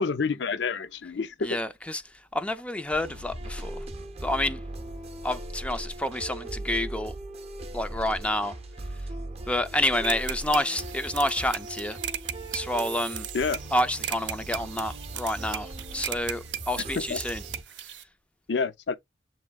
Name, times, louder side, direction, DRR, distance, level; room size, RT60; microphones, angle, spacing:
voice 1, 0.0-1.6 13.3-13.6 17.0-17.2 18.5-19.0, left 4 dB, 75° left, 0.5 m, -28 dB
voice 2, 1.4-2.0 2.3-3.9 4.2-4.6 5.2-7.2 7.7-8.6 9.5-12.0 12.5-13.3 13.7-17.4 17.8-18.0, left 1 dB, 5° left, 0.4 m, -29 dB
sound 1, 2.9-17.6, right 1 dB, 35° right, 0.6 m, -39 dB
sound 2, 10.0-18.0, right 11 dB, 90° right, 0.6 m, -37 dB
7.3 x 3.1 x 2.3 m
head